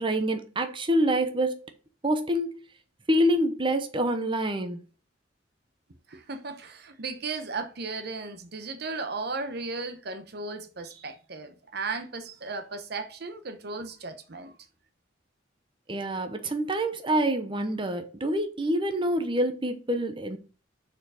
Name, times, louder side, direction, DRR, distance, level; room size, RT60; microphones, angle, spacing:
voice 1, 0.0-1.7 2.0-2.5 3.1-4.8 15.9-20.4, right 1 dB, 25° right, 0.8 m, -26 dB
voice 2, 6.1-14.5, right 3 dB, 55° right, 0.9 m, -36 dB
6.5 x 4.5 x 4.9 m
head